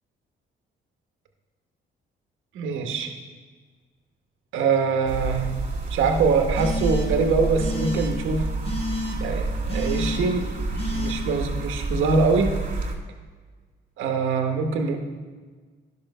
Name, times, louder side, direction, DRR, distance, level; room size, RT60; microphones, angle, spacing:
voice 1, 2.5-3.1 4.5-5.5 5.9-8.5 9.2-10.5 10.9-12.5 14.0-15.0, right 4 dB, 85° right, 5 dB, 1.1 m, -23 dB
sound 1, 5.1-13.0, right 3 dB, 45° right, 2.0 m, -29 dB
sound 2, 6.5-7.3 7.6-8.1 8.6-9.2 9.7-10.2 10.8-11.1, left 2 dB, 30° left, 1.7 m, -30 dB
11.0 x 5.9 x 5.4 m, 1.4 s
cardioid pair, 90°, 20 cm